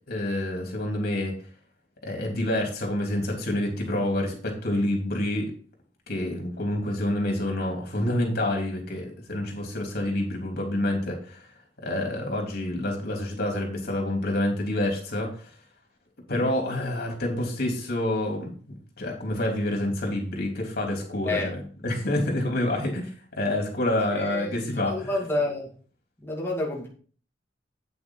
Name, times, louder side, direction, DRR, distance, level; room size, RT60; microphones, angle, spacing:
voice 1, 0.1-1.3 2.0-5.5 6.1-11.4 11.8-15.5 16.3-18.6 19.0-23.1 23.4-25.1, left 1 dB, 55° left, 1 dB, 3.5 m, -28 dB
voice 2, 24.0-25.7 26.2-26.9, left 2 dB, 10° left, -3 dB, 2.5 m, -29 dB
9.1 x 7.9 x 4.0 m, 0.42 s
head